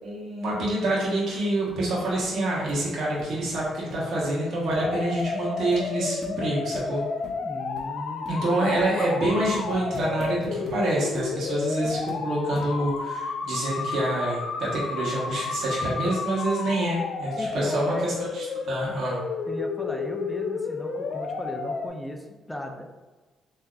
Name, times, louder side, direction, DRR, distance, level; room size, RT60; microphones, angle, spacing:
voice 1, 0.0-7.0 8.3-19.2, right 1 dB, 65° right, -6 dB, 1.0 m, -27 dB
sound 1, 1.7-1.8 2.2-2.3 2.7-2.8 3.2-4.3 4.7-4.9 5.2-5.3 5.7-5.8 6.2-6.4 6.7-6.9 7.2-7.4 7.8-7.9 8.2-8.4 8.8-8.9 9.2-10.8 11.1-11.3 11.8-12.2 12.6-13.0 13.5-13.6, left 2 dB, 45° left, 0.7 m, -42 dB
sound 2, 4.6-21.9, left 4 dB, 70° left, 0.3 m, -32 dB
voice 2, 7.4-8.7 17.4-18.1 19.5-22.9, left 1 dB, 10° left, 2 dB, 0.5 m, -36 dB
3.6 x 2.7 x 2.4 m, 1.2 s
cardioid pair, 90°, 0 cm